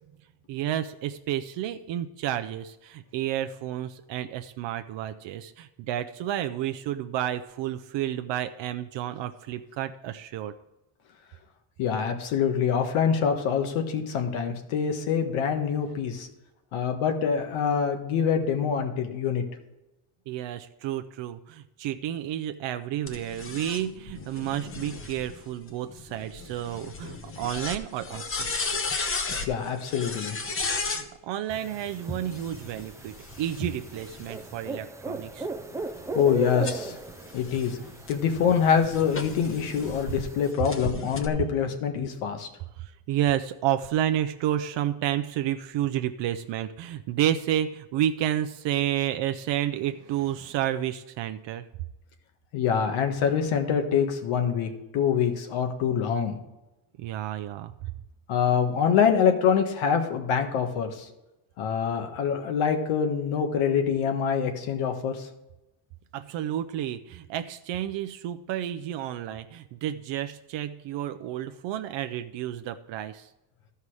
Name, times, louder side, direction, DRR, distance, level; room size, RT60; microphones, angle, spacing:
voice 1, 0.5-10.5 20.3-28.5 30.9-35.5 42.8-51.6 57.0-57.9 66.1-73.3, right 11 dB, 65° right, 9 dB, 0.6 m, -31 dB
voice 2, 11.8-16.3 16.7-19.4 29.5-30.4 36.1-37.0 37.3-37.8 38.1-42.5 52.5-56.4 58.3-61.1 61.6-65.3, left 7 dB, 85° left, 6 dB, 1.6 m, -25 dB
sound 1, 23.1-31.1 32.2-34.6 35.2-40.2 40.6-41.3, left 4 dB, 25° left, 0.9 m, -35 dB
sound 2, 31.5-40.5, right 3 dB, 5° right, 0.3 m, -37 dB
13.0 x 5.6 x 4.8 m, 0.96 s
cardioid pair, 135°, 48 cm